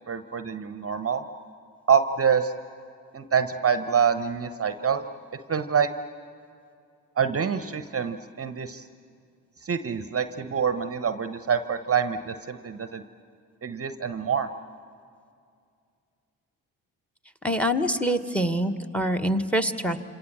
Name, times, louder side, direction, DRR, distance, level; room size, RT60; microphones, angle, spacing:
voice 1, 0.1-1.2 1.9-2.5 3.1-5.0 5.5-5.9 7.2-8.8 9.6-13.0 13.6-14.5, right 7 dB, 30° right, 10 dB, 1.0 m, -26 dB
voice 2, 17.4-20.0, equal, 5° left, 10 dB, 1.5 m, -25 dB
27.5 x 27.0 x 7.3 m, 2.3 s
figure-of-eight pair, 40°, 45 cm